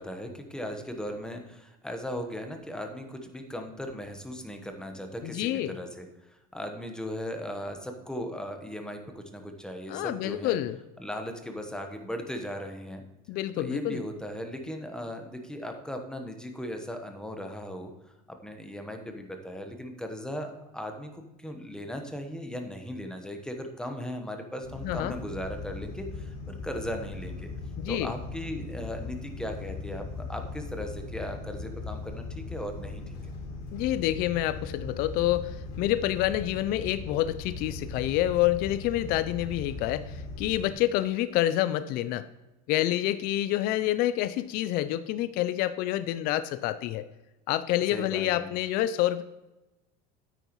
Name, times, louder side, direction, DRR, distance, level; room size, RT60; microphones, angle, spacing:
voice 1, 0.0-6.1 6.5-10.6 11.0-13.0 13.6-17.9 18.3-27.5 27.9-33.1 47.9-48.5, equal, 5° left, 5 dB, 1.0 m, -37 dB
voice 2, 5.2-5.8 9.9-10.8 13.3-14.0 24.8-25.1 27.8-28.1 33.7-42.3 42.7-47.1 47.5-49.2, left 14 dB, 50° left, 13 dB, 0.4 m, -28 dB
sound 1, 24.6-40.6, left 3 dB, 85° left, 3.2 m, -39 dB
9.2 x 9.1 x 3.1 m, 1.0 s
cardioid pair, 140°, 20 cm